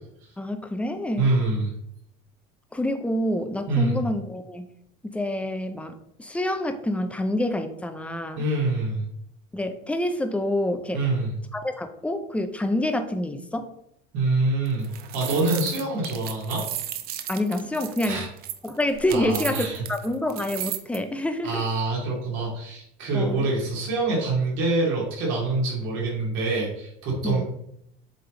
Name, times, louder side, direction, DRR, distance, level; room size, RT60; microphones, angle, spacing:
voice 1, 0.4-1.3 2.7-4.7 5.0-8.5 9.5-11.0 11.5-13.7 17.3-18.3 18.6-21.6 23.1-23.5 27.2-27.4, left 1 dB, 5° left, 7 dB, 0.5 m, -27 dB
voice 2, 1.2-1.7 3.7-4.0 8.3-9.0 10.9-11.3 14.1-16.6 18.0-18.3 19.1-19.8 21.4-27.4, right 2 dB, 65° right, -4 dB, 2.5 m, -25 dB
sound 1, 14.7-21.0, right 11 dB, 45° right, 0.6 m, -35 dB
7.9 x 3.4 x 3.8 m, 0.76 s
cardioid pair, 145°, 21 cm